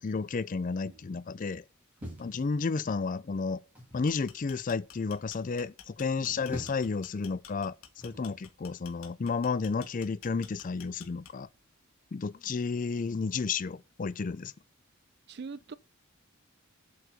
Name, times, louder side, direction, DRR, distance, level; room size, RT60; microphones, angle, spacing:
voice 1, 0.0-1.6 2.2-3.6 3.9-7.8 8.0-11.5 12.1-14.5, left 4 dB, 40° left, 0.4 m, -32 dB
sound 1, 2.0-3.0 3.8-4.2 6.1-7.0 8.0-8.3, equal, 5° right, 2.9 m, -44 dB
sound 2, 3.9-11.6, left 9 dB, 75° left, 1.4 m, -51 dB
voice 2, 15.3-15.7, right 4 dB, 50° right, 0.5 m, -44 dB
7.8 x 4.7 x 6.6 m
head